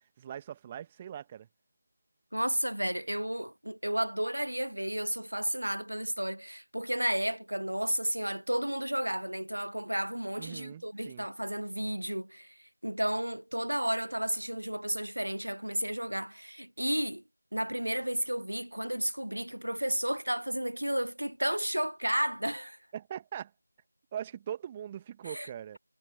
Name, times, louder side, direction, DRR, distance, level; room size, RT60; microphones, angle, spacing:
voice 1, 0.2-1.5 10.4-11.3 22.9-23.5 24.1-25.8, right 9 dB, 10° right, 1.9 m, -41 dB
voice 2, 2.3-17.2 17.5-22.8 25.2-25.5, right 1 dB, 75° right, 1.1 m, -32 dB
figure-of-eight pair, 170°, 0 cm